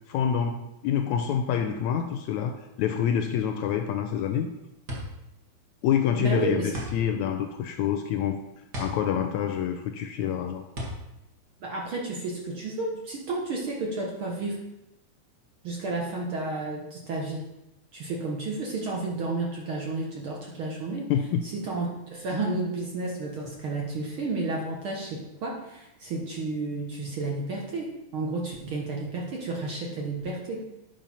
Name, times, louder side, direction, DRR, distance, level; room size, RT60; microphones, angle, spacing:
voice 1, 0.1-4.5 5.8-8.4 8.8-10.6 21.1-21.4, left 8 dB, 80° left, 6 dB, 1.7 m, -27 dB
sound 1, 4.6-12.4, equal, 40° right, 2.0 m, -39 dB
voice 2, 6.2-6.7 11.6-14.6 15.6-17.4 17.9-21.1 21.4-30.6, right 3 dB, 55° right, -2 dB, 1.6 m, -31 dB
8.8 x 5.5 x 5.5 m, 0.92 s
omnidirectional pair, 3.7 m